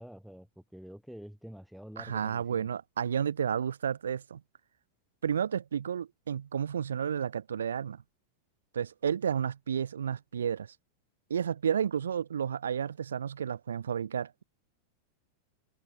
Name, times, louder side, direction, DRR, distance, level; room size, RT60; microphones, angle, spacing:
voice 1, 0.0-2.7, equal, ahead, 4.5 m, -48 dB
voice 2, 2.0-4.4 5.2-8.0 8.7-10.7 11.3-14.4, right 8 dB, 65° right, 1.3 m, -31 dB
figure-of-eight pair, 90°, 0 cm